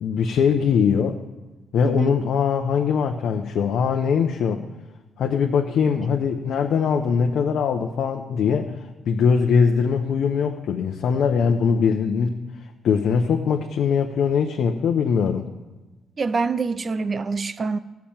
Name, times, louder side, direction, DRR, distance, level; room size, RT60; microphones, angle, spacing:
voice 1, 0.0-1.1 1.7-4.6 5.2-8.7 9.1-12.3 12.8-15.4, left 6 dB, 70° left, 3 dB, 0.8 m, -21 dB
voice 2, 1.8-2.2 16.2-17.8, right 4 dB, 40° right, 13 dB, 0.6 m, -25 dB
13.0 x 5.9 x 8.8 m, 1.2 s
cardioid pair, 90°, 0 cm